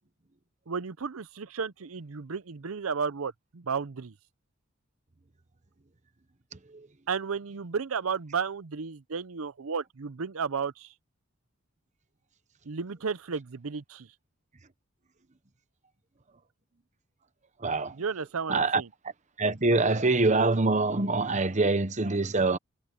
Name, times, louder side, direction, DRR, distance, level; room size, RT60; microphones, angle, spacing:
voice 1, 0.7-4.1 7.1-10.9 12.7-14.1 17.9-18.9, right 5 dB, 85° right, 0.7 m, -33 dB
voice 2, 17.6-18.0 18.5-18.8 19.4-22.6, right 3 dB, 35° right, 1.1 m, -25 dB
head